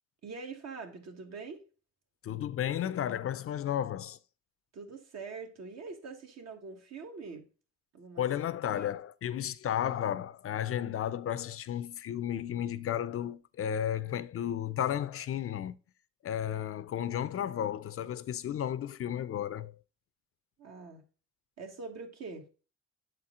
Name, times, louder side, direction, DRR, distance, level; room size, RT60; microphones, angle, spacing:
voice 1, 0.2-1.6 4.7-7.4 7.9-8.2 8.7-8.9 20.6-21.0 21.6-22.5, right 4 dB, 60° right, 1.6 m, -44 dB
voice 2, 2.2-4.2 8.2-15.8 16.2-19.8, left 10 dB, 50° left, 0.5 m, -33 dB
7.8 x 4.4 x 3.7 m
cardioid pair, 90°, 30 cm